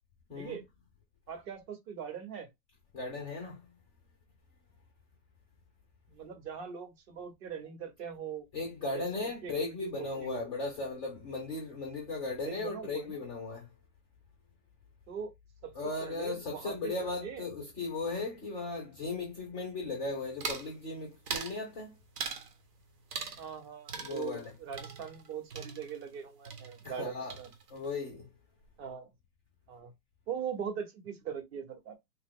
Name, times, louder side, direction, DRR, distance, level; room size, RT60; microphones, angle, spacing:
voice 1, 1.3-2.5 6.1-8.5 8.9-10.4 12.4-13.2 15.1-15.3 15.6-15.7 16.0-16.9 17.2-17.4 23.4-27.5 28.8-29.1 29.7-29.9 30.3-32.0, right 7 dB, 40° right, 1.0 m, -41 dB
voice 2, 2.9-3.6 8.5-13.7 15.7-22.0 23.9-24.5 26.8-27.4 27.7-28.3, left 3 dB, 15° left, 0.4 m, -37 dB
sound 1, 20.4-20.7 21.3-21.6 22.2-22.5 23.1-23.6 23.9-26.2 26.5-27.0 27.3-27.9, right 5 dB, 70° right, 1.0 m, -40 dB
2.9 x 2.1 x 3.6 m
hypercardioid pair, 120°, 49 cm